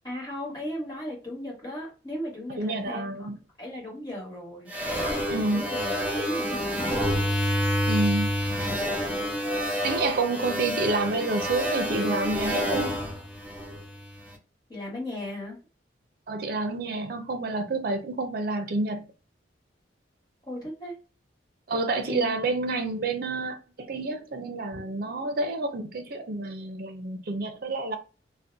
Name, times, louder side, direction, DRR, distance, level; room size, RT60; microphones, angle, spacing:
voice 1, 0.0-3.3 3.6-4.7 5.5-5.9 6.2-7.3 14.7-15.6 20.5-20.9 22.1-22.3, left 1 dB, 20° left, 1.1 m, -36 dB
voice 2, 2.6-3.4 5.3-5.7 7.9-8.3 9.8-13.0 16.3-19.1 21.7-28.0, right 3 dB, 55° right, 0.5 m, -29 dB
sound 1, 4.7-14.2, equal, 10° right, 0.6 m, -28 dB
2.5 x 2.1 x 2.6 m
head